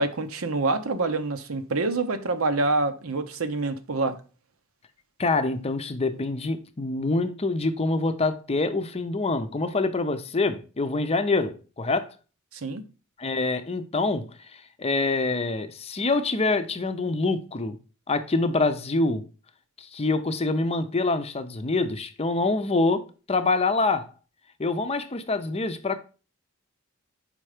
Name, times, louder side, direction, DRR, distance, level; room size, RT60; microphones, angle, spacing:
voice 1, 0.0-4.2 12.5-12.8, right 3 dB, 80° right, 0.8 m, -26 dB
voice 2, 5.2-12.1 13.2-17.8 18.1-19.3 19.8-24.1 24.6-26.0, left 3 dB, 30° left, 0.6 m, -26 dB
5.2 x 4.4 x 4.9 m
head